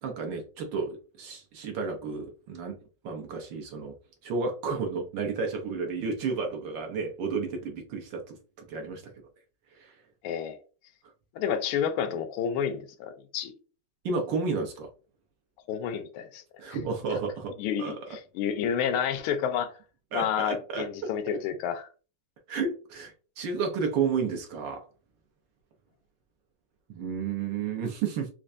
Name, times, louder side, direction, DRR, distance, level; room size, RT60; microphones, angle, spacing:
voice 1, 0.0-2.8 3.0-3.9 4.2-9.1 9.7-9.9 14.0-14.9 16.6-17.9 20.1-21.4 22.5-24.8 26.9-28.3, right 5 dB, 65° right, 1.3 m, -32 dB
voice 2, 10.2-10.6 11.3-13.5 15.7-16.4 16.7-16.8 17.6-19.8 20.1-21.9, left 8 dB, 80° left, 1.4 m, -30 dB
4.4 x 2.2 x 2.5 m
omnidirectional pair, 2.4 m